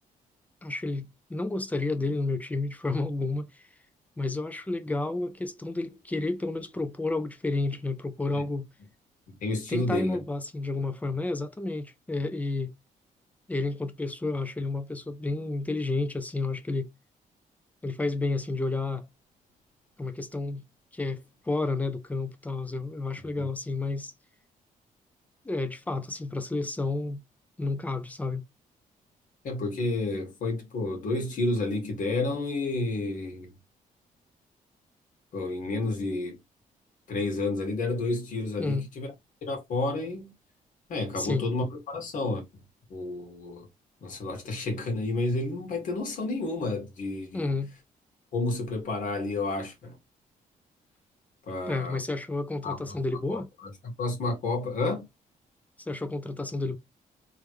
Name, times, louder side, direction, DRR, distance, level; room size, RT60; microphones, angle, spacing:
voice 1, 0.6-3.6 4.2-8.7 9.7-12.7 13.5-16.9 17.8-19.1 20.0-20.6 20.9-24.1 25.4-27.2 27.6-28.5 38.6-38.9 41.2-41.5 47.3-47.7 51.7-53.5 55.8-56.8, left 3 dB, 10° left, 0.5 m, -31 dB
voice 2, 9.3-10.2 23.2-23.5 29.4-33.5 35.3-36.4 37.1-39.1 39.4-40.3 40.9-42.6 42.9-43.7 44.0-47.5 48.3-49.9 51.5-52.0 52.6-53.7 54.0-55.0, left 2 dB, 65° left, 2.0 m, -30 dB
3.6 x 3.3 x 3.1 m
cardioid pair, 155°, 14 cm